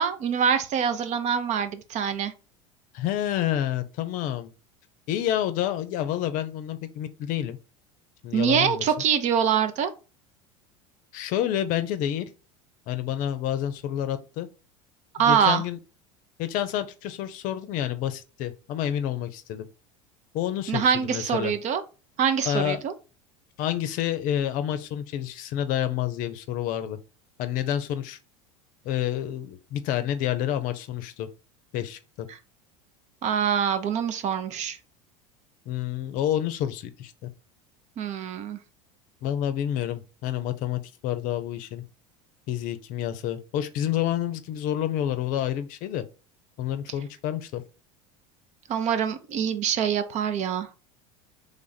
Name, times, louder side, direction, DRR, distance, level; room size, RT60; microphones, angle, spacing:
voice 1, 0.0-2.3 8.3-9.9 15.2-15.6 20.7-21.8 22.2-22.9 33.2-34.8 38.0-38.6 48.7-50.7, right 8 dB, 45° right, 0.6 m, -24 dB
voice 2, 2.9-4.5 5.1-7.6 8.2-8.9 11.1-12.3 12.9-14.5 15.2-15.8 16.4-19.7 20.3-21.5 22.5-22.8 23.6-27.0 27.4-28.2 28.8-31.3 31.7-32.3 35.7-37.3 39.2-41.8 42.5-46.0 46.6-47.6, left 11 dB, 55° left, 0.6 m, -29 dB
3.3 x 2.5 x 4.0 m
hypercardioid pair, 90°, 17 cm